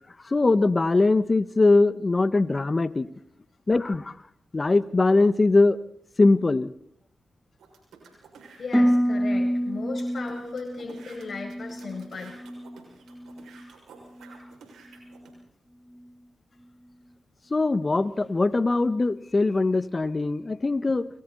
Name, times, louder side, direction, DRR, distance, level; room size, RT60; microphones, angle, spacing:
voice 1, 0.2-3.1 3.7-4.1 4.5-5.8 6.2-6.7 17.5-21.1, left 3 dB, 40° left, 13 dB, 1.6 m, -21 dB
sound 1, 7.6-8.6 9.2-9.3 9.5-9.6 10.0-15.3, right 5 dB, 90° right, 6.7 m, -51 dB
voice 2, 8.6-12.4 19.2-19.5, left 4 dB, 60° left, 2 dB, 6.9 m, -37 dB
Harp, 8.7-12.8 13.1-13.7 14.2-14.5, equal, ahead, 2.9 m, -27 dB
29.5 x 24.0 x 4.4 m, 0.66 s
supercardioid pair, 40°, 0 cm